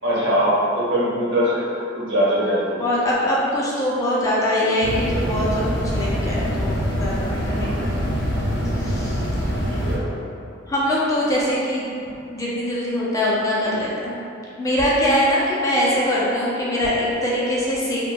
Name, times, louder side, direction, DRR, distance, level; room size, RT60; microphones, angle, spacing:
voice 1, 0.0-1.7 1.9-2.8 7.4-7.7 9.7-10.2, equal, 85° right, -8 dB, 1.0 m, -22 dB
voice 2, 2.8-8.1 8.8-9.2 10.7-11.9 12.3-14.1 14.6-18.0, equal, 20° left, -7 dB, 0.5 m, -22 dB
sound 1, 4.8-10.0, equal, 65° left, 0.6 m, -24 dB
4.1 x 2.2 x 2.2 m, 2.5 s
head